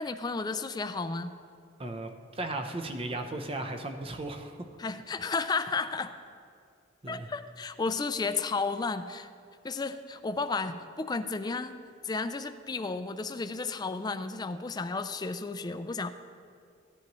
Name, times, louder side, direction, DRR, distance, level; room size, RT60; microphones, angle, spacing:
voice 1, 0.0-1.3 4.8-6.1 7.1-9.3 9.6-11.8 12.0-16.1, left 4 dB, 20° left, 10 dB, 0.4 m, -33 dB
voice 2, 1.8-4.6 7.0-7.3, right 2 dB, 30° right, 5 dB, 0.7 m, -36 dB
16.0 x 10.0 x 3.1 m, 2.4 s
head